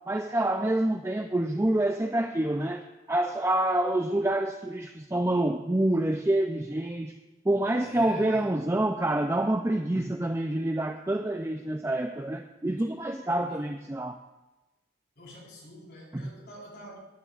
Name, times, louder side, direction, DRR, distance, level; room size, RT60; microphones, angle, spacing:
voice 1, 0.1-2.8 3.1-7.2 7.4-14.2 16.1-16.3, right 1 dB, 15° right, 5 dB, 0.4 m, -27 dB
voice 2, 7.8-8.5 13.4-13.6 15.2-17.0, equal, 60° left, -4 dB, 4.4 m, -46 dB
20.0 x 11.0 x 2.5 m, 1.1 s
head